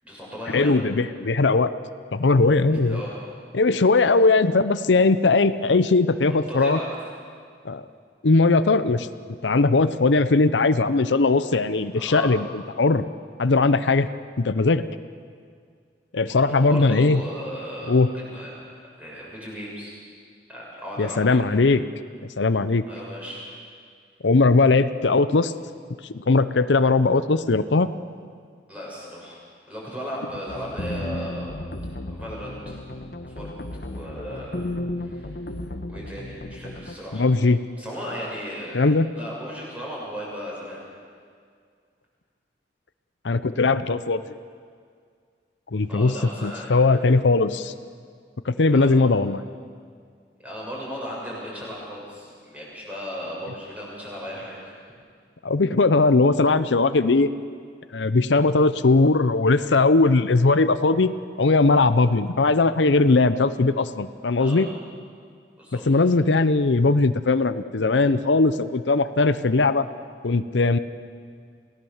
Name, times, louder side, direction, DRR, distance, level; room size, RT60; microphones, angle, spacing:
voice 1, 0.0-0.7 2.7-3.2 6.3-6.9 11.9-12.3 16.2-18.5 19.0-19.9 20.5-21.4 22.9-23.4 28.7-31.5 32.1-32.8 33.2-33.5 33.9-34.6 35.0-35.4 35.9-37.3 37.8-38.9 39.1-40.8 45.8-46.8 48.7-49.0 50.4-54.7 64.4-64.7 65.6-65.9, equal, 10° right, -5 dB, 7.1 m, -36 dB
voice 2, 0.5-1.7 2.1-3.0 3.5-6.8 7.6-7.8 8.2-9.1 9.4-12.4 12.8-13.0 13.4-14.1 14.4-14.8 16.1-17.2 17.9-18.1 21.0-21.8 22.4-22.8 24.2-25.5 26.1-27.9 37.1-37.6 38.7-39.1 43.2-44.2 45.7-46.1 46.4-47.7 48.5-49.4 55.4-57.3 57.9-64.7 65.9-69.8 70.2-70.8, left 3 dB, 90° left, 12 dB, 0.7 m, -19 dB
sound 1, 30.5-36.9, left 1 dB, 60° left, 1.2 m, -34 dB
28.0 x 17.5 x 7.3 m, 2.1 s
head